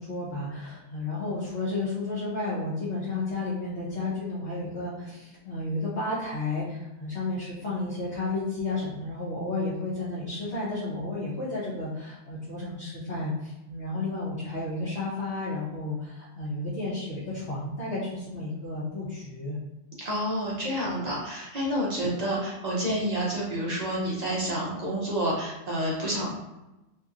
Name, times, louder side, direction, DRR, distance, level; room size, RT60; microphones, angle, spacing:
voice 1, 0.0-19.6, left 2 dB, 55° left, -9 dB, 1.0 m, -32 dB
voice 2, 20.0-26.3, equal, 40° right, -5 dB, 0.7 m, -29 dB
2.8 x 2.7 x 2.4 m, 0.99 s
omnidirectional pair, 1.3 m